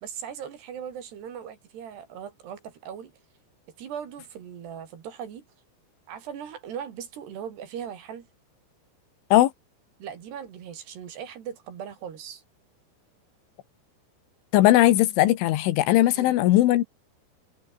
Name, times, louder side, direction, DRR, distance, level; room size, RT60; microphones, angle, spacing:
voice 1, 0.0-3.1 3.8-5.4 6.1-8.3 10.0-12.4 16.1-16.3, right 8 dB, 60° right, 4.5 m, -39 dB
voice 2, 14.5-16.8, left 15 dB, 75° left, 3.7 m, -19 dB
omnidirectional pair, 5.7 m